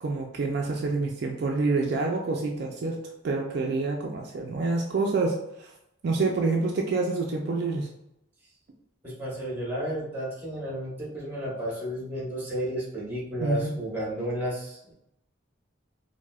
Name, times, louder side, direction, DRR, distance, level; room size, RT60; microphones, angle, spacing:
voice 1, 0.0-3.0 3.2-5.7 6.0-7.9 13.4-13.7, right 3 dB, 55° right, 1 dB, 0.3 m, -27 dB
voice 2, 9.0-14.9, equal, 10° right, -5 dB, 1.0 m, -32 dB
4.6 x 2.1 x 2.3 m, 0.83 s
head